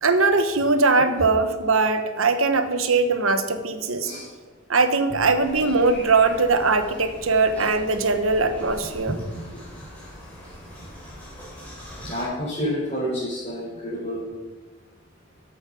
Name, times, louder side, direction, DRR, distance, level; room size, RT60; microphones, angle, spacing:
voice 1, 0.0-4.1 4.7-9.2, right 3 dB, 90° right, 8 dB, 1.2 m, -21 dB
sound 1, 5.4-12.2, equal, 5° left, 4.2 m, -42 dB
voice 2, 8.8-9.4 10.8-10.9 12.0-14.3, equal, 30° left, -10 dB, 4.4 m, -29 dB
13.5 x 8.3 x 5.3 m, 1.2 s
head